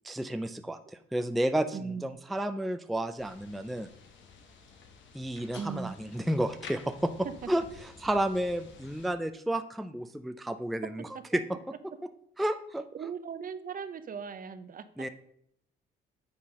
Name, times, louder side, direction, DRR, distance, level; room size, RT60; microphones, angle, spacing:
voice 1, 0.0-0.8 1.1-3.9 5.1-7.1 7.5-7.6 8.0-11.1 11.3-11.4 12.4-12.8 15.0-15.1, right 1 dB, ahead, 9 dB, 0.4 m, -31 dB
voice 2, 1.7-2.1 5.6-6.0 7.4-7.5 11.3-11.4 12.9-15.1, right 6 dB, 45° right, 12 dB, 0.6 m, -38 dB
sound 1, 3.2-9.1, left 5 dB, 70° left, 1.1 m, -51 dB
8.8 x 3.9 x 5.4 m, 0.71 s
cardioid pair, 90°, 20 cm